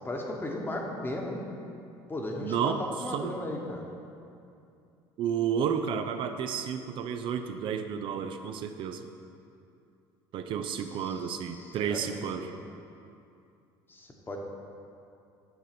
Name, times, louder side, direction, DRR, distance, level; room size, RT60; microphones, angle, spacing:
voice 1, 0.0-1.4 2.1-3.8 11.0-12.1 12.3-12.5 13.9-14.4, left 1 dB, 20° left, 1 dB, 1.2 m, -36 dB
voice 2, 2.4-2.8 3.1-3.4 5.2-9.1 10.3-12.4, right 8 dB, 55° right, 7 dB, 0.5 m, -31 dB
9.3 x 4.0 x 5.9 m, 2.6 s
supercardioid pair, 95°, 10 cm